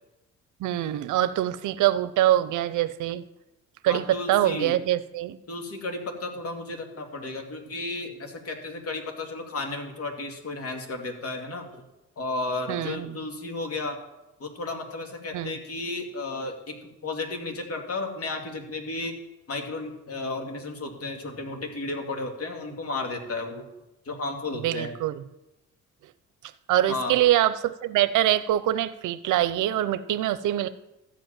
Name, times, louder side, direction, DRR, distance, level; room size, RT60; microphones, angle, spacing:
voice 1, 0.6-3.2 3.8-5.4 12.7-13.2 15.3-15.6 24.6-25.2 26.7-30.7, right 13 dB, 80° right, 15 dB, 0.7 m, -24 dB
voice 2, 3.9-4.7 5.5-11.8 12.2-14.0 14.4-19.1 19.5-23.6 24.0-24.9 26.9-27.2, left 2 dB, 50° left, 3 dB, 2.6 m, -33 dB
13.5 x 5.2 x 8.9 m, 0.98 s
cardioid pair, 90°, 30 cm